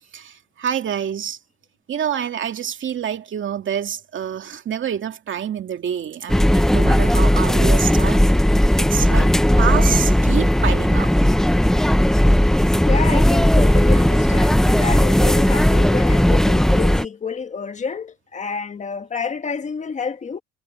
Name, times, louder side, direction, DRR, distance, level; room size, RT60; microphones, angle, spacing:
voice 1, 0.1-1.4 1.9-8.2 8.8-9.3 9.6-11.1, right 9 dB, 35° right, 2.4 m, -27 dB
sound 1, 6.3-17.1, equal, ahead, 0.7 m, -16 dB
voice 2, 12.8-20.4, left 5 dB, 20° left, 1.4 m, -29 dB
cardioid pair, 145°, 35 cm